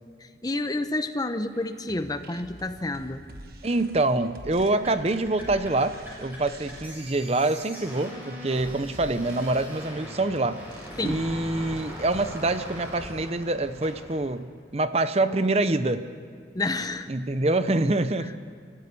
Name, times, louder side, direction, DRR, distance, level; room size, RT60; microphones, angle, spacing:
voice 1, 0.2-3.2 11.0-11.2 16.5-17.1 18.2-18.3, left 2 dB, 20° left, 9 dB, 0.8 m, -29 dB
sound 1, 1.4-13.3, right 1 dB, 55° right, 1.4 m, -48 dB
voice 2, 3.6-10.6 11.0-16.0 17.1-18.3, right 2 dB, 35° right, 11 dB, 0.7 m, -25 dB
sound 2, 4.5-14.2, equal, 10° right, 7.2 m, -41 dB
30.0 x 15.0 x 6.9 m, 2.1 s
head